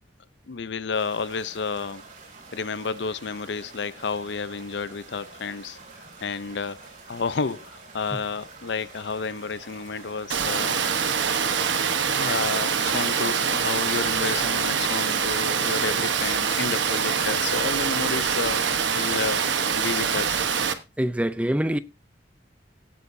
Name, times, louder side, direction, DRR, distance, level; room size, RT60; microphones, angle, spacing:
voice 1, 0.5-2.0 2.5-5.8 6.2-6.8 7.1-10.8 12.1-19.5 19.7-20.4, left 5 dB, 70° left, 0.6 m, -31 dB
sound 1, 0.9-17.5, right 3 dB, 45° right, 6.2 m, -47 dB
Water, 10.3-20.7, right 6 dB, 85° right, 1.1 m, -24 dB
voice 2, 21.0-21.8, right 1 dB, 5° right, 0.5 m, -24 dB
17.0 x 8.4 x 2.7 m
head